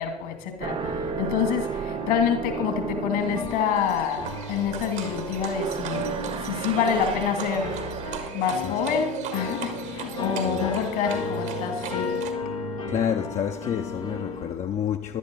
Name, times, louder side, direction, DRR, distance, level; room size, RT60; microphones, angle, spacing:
voice 1, 0.0-7.9 8.3-12.2, left 7 dB, 70° left, 2.4 m, -27 dB
sound 1, 0.6-8.3, right 7 dB, 30° right, 0.4 m, -34 dB
sound 2, 0.8-14.5, left 4 dB, 90° left, 1.4 m, -35 dB
Livestock farm animals working animals, 3.2-12.3, right 9 dB, 70° right, 1.9 m, -37 dB
voice 2, 8.6-9.0 10.4-10.7 12.9-15.2, left 8 dB, 45° left, 0.8 m, -29 dB
16.0 x 11.5 x 3.9 m
figure-of-eight pair, 50°, 17 cm